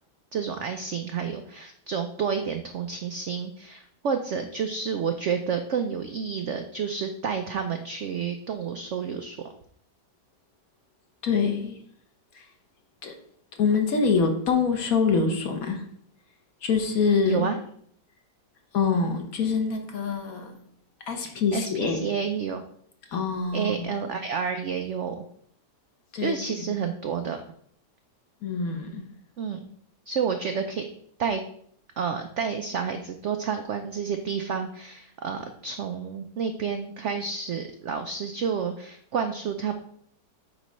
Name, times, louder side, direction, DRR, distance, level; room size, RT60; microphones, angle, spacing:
voice 1, 0.3-9.4 17.2-17.5 21.5-22.6 23.5-25.2 26.2-27.4 29.4-29.6 30.1-30.9 31.2-31.4 32.0-39.7, right 6 dB, 85° right, 6 dB, 0.6 m, -30 dB
voice 2, 11.2-11.8 12.3-12.5 13.0-13.2 13.5-15.9 16.6-17.5 18.7-20.6 21.1-22.0 23.1-23.9 26.1-26.4 28.4-29.0, left 5 dB, 55° left, 4 dB, 1.4 m, -25 dB
8.3 x 3.1 x 5.2 m, 0.64 s
omnidirectional pair, 1.9 m